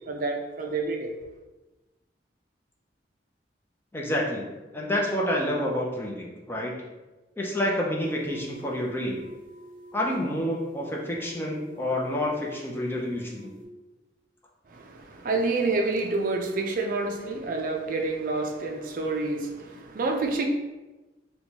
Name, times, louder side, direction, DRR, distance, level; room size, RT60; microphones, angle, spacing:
voice 1, 0.1-1.1 14.7-20.4, right 3 dB, 50° right, 2 dB, 0.4 m, -28 dB
voice 2, 3.9-4.5 4.7-6.7 7.4-9.2 9.9-13.5, left 1 dB, 10° left, -2 dB, 0.5 m, -28 dB
sound 1, 8.0-13.6, right 1 dB, 30° left, 0.9 m, -48 dB
4.4 x 2.2 x 2.8 m, 1.1 s
head